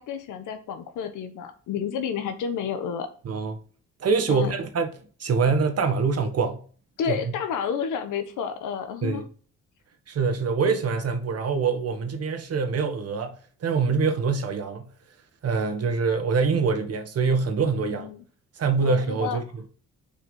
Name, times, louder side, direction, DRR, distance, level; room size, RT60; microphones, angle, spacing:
voice 1, 0.0-3.1 4.3-4.5 7.0-9.3 17.9-18.2 18.8-19.4, left 7 dB, 85° left, 1.2 m, -30 dB
voice 2, 3.2-3.6 4.0-4.9 5.2-6.6 7.1-7.2 9.0-9.2 10.1-14.9 15.4-18.1 18.6-19.4, right 5 dB, 55° right, 1.5 m, -24 dB
6.4 x 4.7 x 5.5 m
cardioid pair, 90°, 30 cm